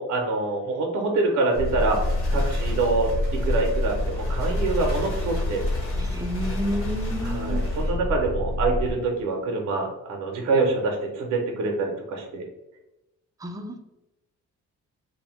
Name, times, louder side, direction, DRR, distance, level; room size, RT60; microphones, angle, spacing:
voice 1, 0.0-2.0 2.3-5.6 7.2-12.4, right 3 dB, 60° right, 0 dB, 0.6 m, -25 dB
sound 1, 1.5-8.9, left 2 dB, 75° left, 1.0 m, -27 dB
sound 2, 1.5-8.0, left 1 dB, 45° left, 1.0 m, -42 dB
voice 2, 6.0-7.6 13.4-13.8, equal, 10° right, 3 dB, 0.4 m, -30 dB
2.6 x 2.1 x 3.0 m, 0.95 s
cardioid pair, 90°, 30 cm